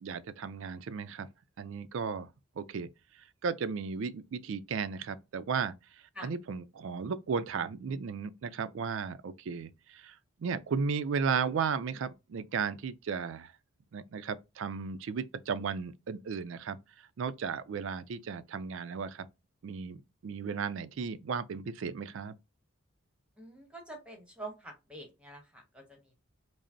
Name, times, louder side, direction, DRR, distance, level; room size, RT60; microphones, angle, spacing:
voice 1, 0.0-1.3 1.6-2.3 2.6-2.9 3.4-5.7 6.2-13.5 13.9-16.8 17.2-19.3 19.6-22.3, right 5 dB, 65° right, 0.3 m, -35 dB
voice 2, 23.4-26.2, right 1 dB, 5° right, 1.0 m, -46 dB
5.0 x 2.0 x 2.6 m
head